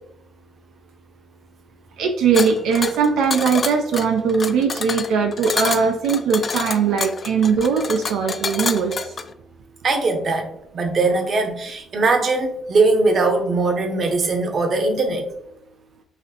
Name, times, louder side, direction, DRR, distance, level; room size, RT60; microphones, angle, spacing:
voice 1, 2.0-9.0, right 6 dB, 90° right, 3 dB, 0.3 m, -20 dB
sound 1, 2.3-9.3, left 5 dB, 40° left, 0.3 m, -28 dB
voice 2, 9.8-15.3, right 3 dB, 50° right, 4 dB, 0.7 m, -20 dB
4.0 x 2.4 x 2.8 m, 0.77 s
cardioid pair, 90°, 0 cm